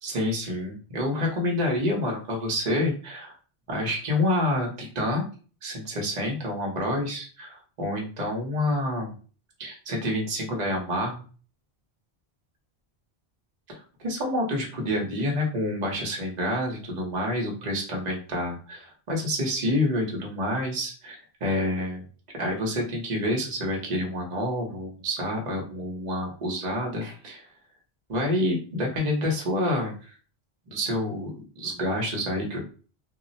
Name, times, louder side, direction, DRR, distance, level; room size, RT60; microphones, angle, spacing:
voice 1, 0.0-3.3 3.7-5.2 5.6-9.1 9.6-11.2 13.7-22.0 22.4-27.4 28.1-30.1 30.7-32.6, left 1 dB, 45° right, -1 dB, 0.9 m, -28 dB
2.4 x 2.0 x 3.8 m, 0.39 s
omnidirectional pair, 1.1 m